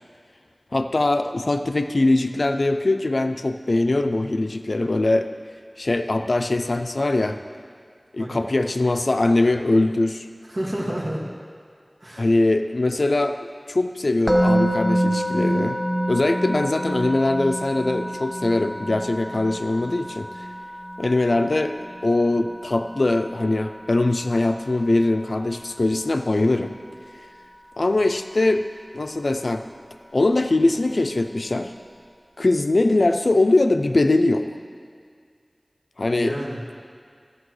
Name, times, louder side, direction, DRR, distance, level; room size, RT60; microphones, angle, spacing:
voice 1, 0.7-5.3 5.8-7.4 8.1-10.3 12.2-15.8 16.1-20.5 21.0-21.8 22.0-26.7 27.8-28.6 28.9-29.6 30.1-31.7 32.4-34.5 36.0-36.3, left 2 dB, 80° left, 7 dB, 0.4 m, -21 dB
voice 2, 8.2-8.5 10.5-11.3 12.0-12.3 36.1-36.8, equal, 50° right, -4 dB, 1.9 m, -30 dB
Musical instrument, 14.3-25.4, right 1 dB, 20° right, 0.9 m, -27 dB
14.0 x 8.4 x 3.2 m, 2.1 s
wide cardioid pair, 50°, 0 cm